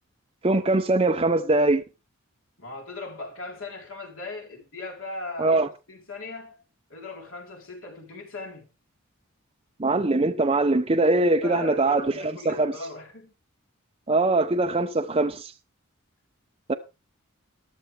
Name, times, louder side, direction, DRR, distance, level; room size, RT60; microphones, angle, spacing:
voice 1, 0.4-1.8 5.4-5.7 9.8-12.7 14.1-15.5 16.7-16.8, right 2 dB, 25° right, 0.7 m, -22 dB
voice 2, 2.6-6.6 6.9-8.7 11.2-13.3, left 3 dB, 70° left, 4.0 m, -38 dB
13.5 x 12.0 x 3.4 m
head